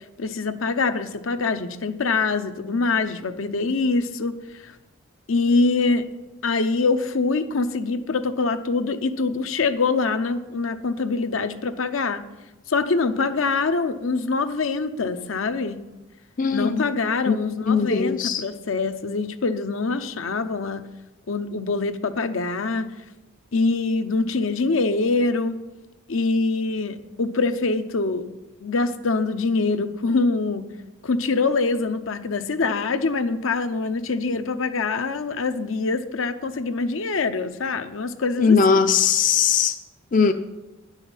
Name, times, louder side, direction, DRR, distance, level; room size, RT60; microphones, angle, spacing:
voice 1, 0.2-4.7 5.3-6.1 6.4-12.2 12.7-15.8 16.5-20.8 21.3-22.9 23.5-25.6 26.1-28.3 28.6-30.7 31.0-38.8, left 3 dB, 75° left, 9 dB, 0.7 m, -24 dB
voice 2, 16.4-16.8 17.3-17.4 17.7-18.4 38.4-39.8 40.1-40.3, left 6 dB, 40° left, 7 dB, 0.4 m, -19 dB
10.0 x 5.7 x 7.2 m, 1.1 s
head